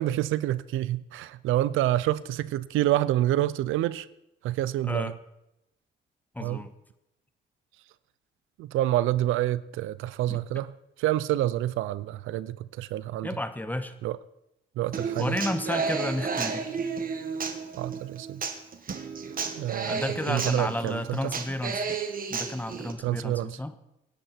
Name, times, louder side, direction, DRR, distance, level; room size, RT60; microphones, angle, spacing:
voice 1, 0.0-4.1 4.4-5.1 6.4-6.6 8.6-10.7 11.0-13.4 14.0-14.2 14.8-15.4 17.8-18.4 19.5-20.0 20.3-21.3 23.0-23.6, right 14 dB, 85° right, 0.6 m, -27 dB
voice 2, 4.8-5.1 6.3-6.7 10.3-10.4 13.2-13.9 15.2-16.7 19.8-21.9 22.3-23.7, left 1 dB, 10° left, 1.4 m, -32 dB
Human voice / Acoustic guitar, 14.9-22.9, right 5 dB, 45° right, 2.0 m, -32 dB
24.5 x 10.5 x 4.6 m
cardioid pair, 90°, 20 cm